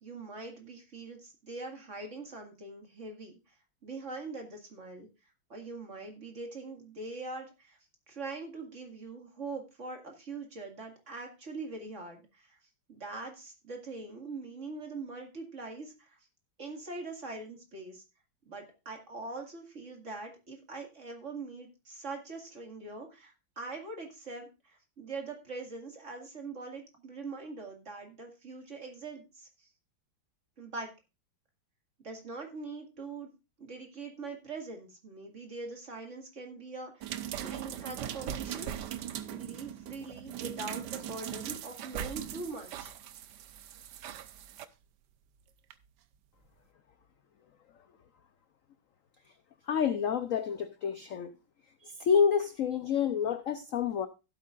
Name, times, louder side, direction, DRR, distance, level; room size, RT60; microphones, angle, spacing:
voice 1, 0.0-3.5 3.8-5.1 5.5-7.8 8.1-12.6 12.9-16.2 16.6-18.0 18.5-29.7 30.6-30.9 32.0-33.3 33.6-38.7 39.3-42.9, right 3 dB, 35° right, 2.4 m, -42 dB
sound 1, 37.0-44.7 45.7-45.8, right 10 dB, 65° right, 1.2 m, -40 dB
voice 2, 49.7-51.3 52.0-54.1, left 7 dB, 70° left, 0.7 m, -28 dB
15.5 x 8.4 x 2.5 m
omnidirectional pair, 2.2 m